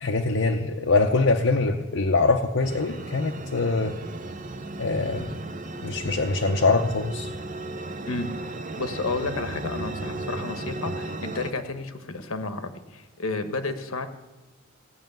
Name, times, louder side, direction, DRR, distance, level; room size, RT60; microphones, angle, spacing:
voice 1, 0.0-3.9 4.8-5.3 5.8-7.3, left 3 dB, 65° left, 2 dB, 0.7 m, -23 dB
sound 1, 2.6-11.5, right 2 dB, 40° right, 0.7 m, -35 dB
voice 2, 8.8-14.1, left 3 dB, 85° left, 8 dB, 1.1 m, -31 dB
15.5 x 6.4 x 9.1 m, 1.2 s
head